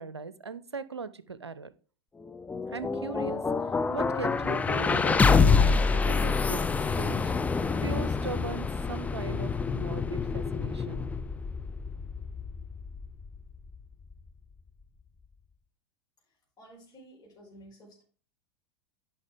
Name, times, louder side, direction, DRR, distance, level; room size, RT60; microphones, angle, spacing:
voice 1, 0.0-1.7 2.7-6.6 6.9-11.1, right 5 dB, 90° right, 15 dB, 0.5 m, -39 dB
sound 1, 2.2-14.3, left 4 dB, 10° left, 0.4 m, -27 dB
voice 2, 16.6-18.0, right 1 dB, 25° left, -5 dB, 4.5 m, -52 dB
9.7 x 5.7 x 3.5 m, 0.39 s
figure-of-eight pair, 90°, 14 cm